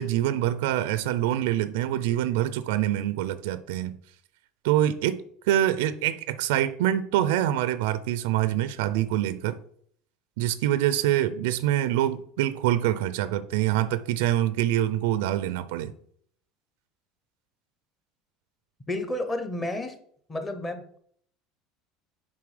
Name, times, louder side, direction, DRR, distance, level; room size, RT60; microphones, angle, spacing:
voice 1, 0.0-4.0 4.6-9.6 10.4-15.9, right 12 dB, 85° right, 0.4 m, -25 dB
voice 2, 18.9-20.0 20.3-21.0, left 1 dB, 15° left, 0.8 m, -31 dB
7.0 x 4.2 x 4.9 m
cardioid pair, 155°, 0 cm